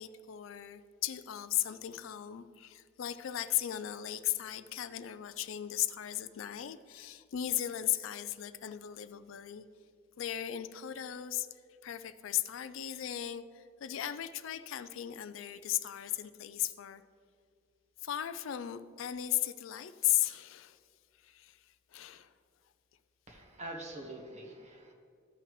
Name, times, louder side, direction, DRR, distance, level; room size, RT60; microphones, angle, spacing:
voice 1, 0.0-9.6 10.2-11.5 11.8-17.0 18.0-20.8 21.2-21.6 21.9-22.3, left 12 dB, 70° left, 12 dB, 0.4 m, -36 dB
voice 2, 23.3-24.9, right 1 dB, 35° right, 1 dB, 1.4 m, -45 dB
14.0 x 5.8 x 3.2 m, 2.2 s
head